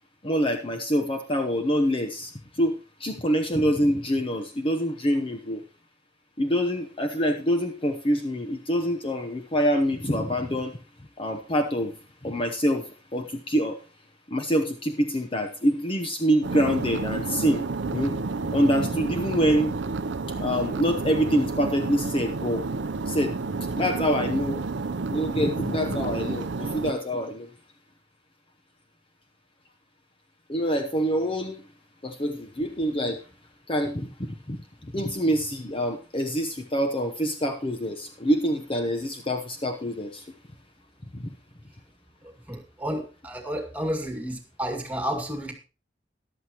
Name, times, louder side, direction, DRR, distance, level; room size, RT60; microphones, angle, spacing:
voice 1, 0.2-2.3 2.6-5.6 6.4-10.8 11.2-11.9 12.2-12.8 13.1-13.8 14.3-17.6 17.9-18.2 18.5-19.7 20.4-22.6 23.1-23.4 23.8-24.6 25.1-27.5 30.5-31.6 32.0-33.2 33.7-34.6 34.9-40.2 41.2-41.3, equal, 30° left, 5 dB, 0.9 m, -25 dB
sound 1, 16.4-26.9, right 3 dB, 85° right, 0.7 m, -30 dB
voice 2, 42.2-45.5, equal, 10° right, 4 dB, 2.2 m, -31 dB
14.0 x 11.0 x 3.0 m, 0.33 s
head